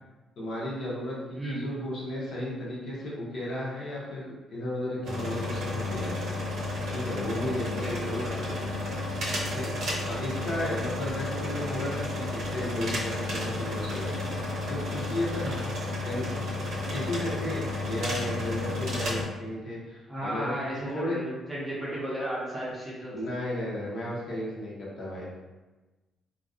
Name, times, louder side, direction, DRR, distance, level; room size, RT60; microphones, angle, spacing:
voice 1, 0.4-6.1 6.9-8.3 9.5-9.7 10.0-14.1 14.7-15.5 16.0-16.5 16.9-20.5 20.8-21.2 23.1-25.4, left 1 dB, 50° left, -5 dB, 0.6 m, -34 dB
voice 2, 1.3-1.7 7.7-8.6 15.4-15.5 20.1-23.2, right 1 dB, 10° right, -8 dB, 0.6 m, -34 dB
sound 1, 5.0-19.2, left 2 dB, 60° right, 0.6 m, -32 dB
2.4 x 2.2 x 2.3 m, 1.2 s
cardioid pair, 170°, 0 cm